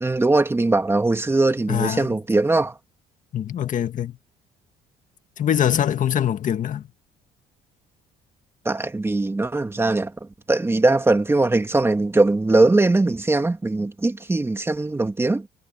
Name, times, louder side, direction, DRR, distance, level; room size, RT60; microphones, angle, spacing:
voice 1, 0.0-2.7 8.7-10.1 10.5-15.5, right 2 dB, 15° right, 2.2 m, -20 dB
voice 2, 1.7-2.2 3.3-4.2 5.4-6.8, left 10 dB, 50° left, 1.9 m, -23 dB
cardioid pair, 110°, 17 cm